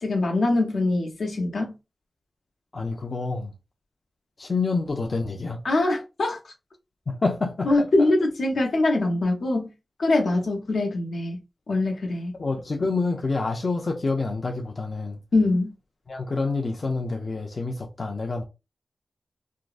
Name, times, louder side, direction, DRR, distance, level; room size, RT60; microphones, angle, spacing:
voice 1, 0.0-1.8 5.6-6.4 7.7-9.7 10.0-11.4 11.7-12.3 15.3-15.7, left 2 dB, 85° left, 0.8 m, -23 dB
voice 2, 2.7-3.5 4.4-5.6 7.1-7.7 8.0-8.1 12.4-15.2 16.1-18.4, left 3 dB, 45° left, 0.4 m, -27 dB
3.4 x 2.0 x 2.4 m
wide cardioid pair, 115°, 0 cm